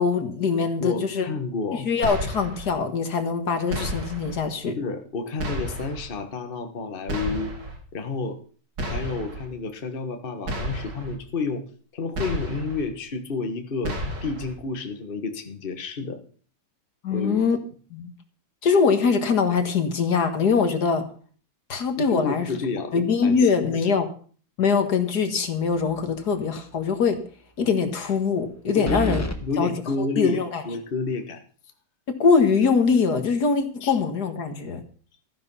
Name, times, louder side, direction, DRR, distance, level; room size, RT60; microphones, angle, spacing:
voice 1, 0.0-1.3 1.7-4.8 17.0-17.6 17.9-18.1 18.6-21.0 21.7-22.5 22.9-24.1 24.6-27.2 27.6-29.2 29.6-29.7 30.0-30.6 32.1-34.8, left 5 dB, 70° left, 7 dB, 2.1 m, -22 dB
voice 2, 0.8-1.8 4.8-7.5 7.9-8.4 8.8-11.6 11.9-16.2 17.1-17.4 22.0-22.9 23.2-23.5 23.8-23.9 28.7-31.4 33.8-34.0, left 4 dB, 35° left, 6 dB, 1.5 m, -30 dB
sound 1, 2.0-2.7 3.7-4.4 5.4-6.1 7.1-7.8 8.8-9.5 10.5-11.2 12.1-12.8 13.8-14.5, equal, 90° right, 3.5 m, -31 dB
sound 2, 25.7-26.2 26.6-26.7 28.8-29.4, equal, 10° left, 1.1 m, -29 dB
14.5 x 10.0 x 5.6 m, 0.43 s
omnidirectional pair, 1.8 m